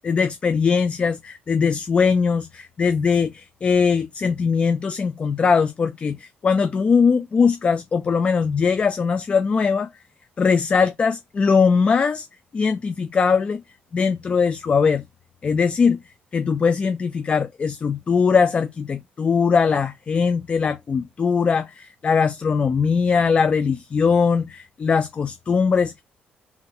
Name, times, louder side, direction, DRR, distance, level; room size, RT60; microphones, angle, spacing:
voice 1, 0.0-9.9 10.4-12.3 12.5-13.6 13.9-15.0 15.4-16.0 16.3-26.0, left 5 dB, 30° left, 0.3 m, -20 dB
3.4 x 2.8 x 2.3 m
cardioid pair, 135°, 4 cm